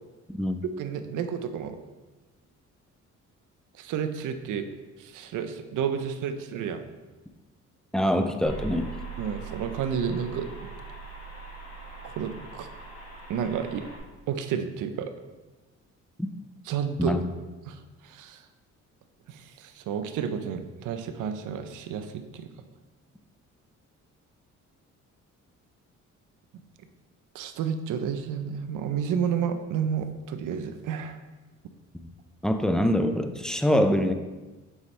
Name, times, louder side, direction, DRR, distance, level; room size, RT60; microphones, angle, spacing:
voice 1, 0.8-1.8 3.8-4.7 5.0-6.8 9.2-10.5 12.0-12.7 13.3-13.8 14.3-15.1 16.7-17.2 17.7-18.4 19.3-22.5 27.3-31.2, right 7 dB, 85° right, 8 dB, 0.7 m, -31 dB
voice 2, 7.9-8.9 17.0-17.3 32.4-34.1, equal, ahead, 7 dB, 0.5 m, -24 dB
sound 1, 8.4-14.0, right 4 dB, 55° left, 1.9 m, -41 dB
7.2 x 5.6 x 3.3 m, 1.2 s
cardioid pair, 90°, 30 cm